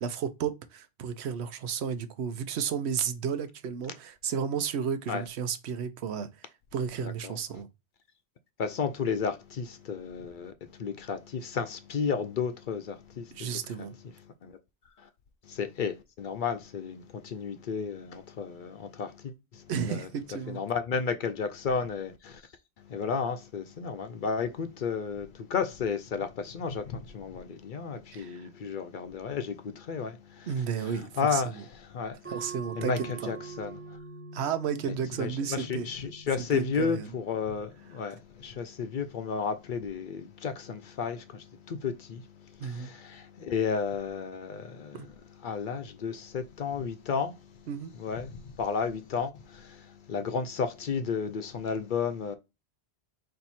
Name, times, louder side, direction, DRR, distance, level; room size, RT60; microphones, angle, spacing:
voice 1, 0.0-6.3 6.7-7.7 13.3-14.0 19.7-20.6 28.1-28.4 30.5-31.6 32.3-33.3 34.3-35.9 36.5-37.1 42.6-42.9 44.9-45.1 47.7-47.9, right 7 dB, 80° right, 0.9 m, -33 dB
voice 2, 7.0-7.4 8.6-13.5 13.8-13.9 14.4-14.6 15.5-20.1 20.5-22.4 22.9-30.5 30.9-32.2 32.8-33.8 35.2-42.2 42.6-45.1 45.4-47.3 48.0-52.3, left 6 dB, 60° left, 0.6 m, -33 dB
sound 1, 32.2-37.4, right 4 dB, 10° right, 1.1 m, -44 dB
4.4 x 2.6 x 4.1 m
omnidirectional pair, 1.1 m